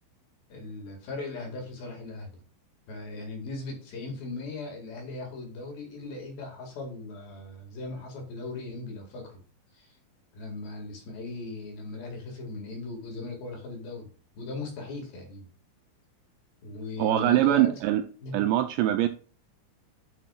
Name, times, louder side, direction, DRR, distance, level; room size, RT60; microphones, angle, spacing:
voice 1, 0.5-2.4 2.9-9.4 9.7-10.0 10.3-14.1 14.3-15.5 16.6-17.8 18.2-18.5, left 3 dB, 55° left, 1 dB, 3.3 m, -38 dB
voice 2, 17.0-18.0 18.3-19.1, right 13 dB, 85° right, 8 dB, 2.5 m, -23 dB
10.5 x 5.8 x 2.3 m, 0.39 s
omnidirectional pair, 5.5 m